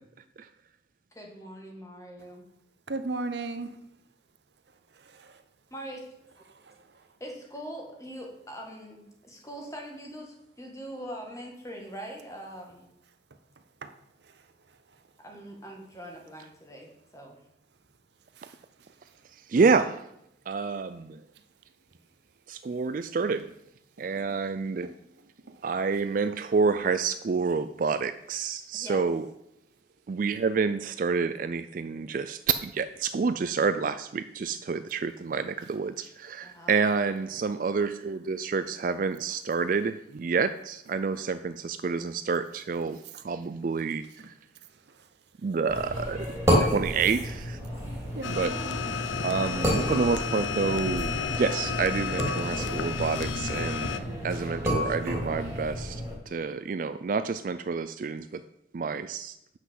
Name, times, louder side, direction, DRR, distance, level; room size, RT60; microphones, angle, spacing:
voice 1, 1.1-2.5 5.7-6.0 7.2-12.9 15.2-17.4 28.7-29.0 36.4-37.0, right 1 dB, 15° left, 1 dB, 1.8 m, -42 dB
voice 2, 2.9-3.8 5.0-5.4 6.6-6.7 13.8-13.9 18.4-18.5 24.8-24.9 25.5-25.6 48.1-48.9, right 3 dB, 60° right, 10 dB, 0.7 m, -36 dB
voice 3, 19.3-20.0 20.5-21.2 22.5-23.5 24.0-24.9 25.6-29.3 30.1-44.3 45.4-47.6 48.3-48.5 49.2-58.4 58.7-59.4, right 5 dB, 45° right, 11 dB, 0.3 m, -28 dB
sound 1, 45.7-56.1, equal, 15° right, 2.7 m, -30 dB
sound 2, 48.2-54.0, left 6 dB, 75° left, 0.7 m, -32 dB
7.9 x 6.2 x 7.2 m, 0.81 s
head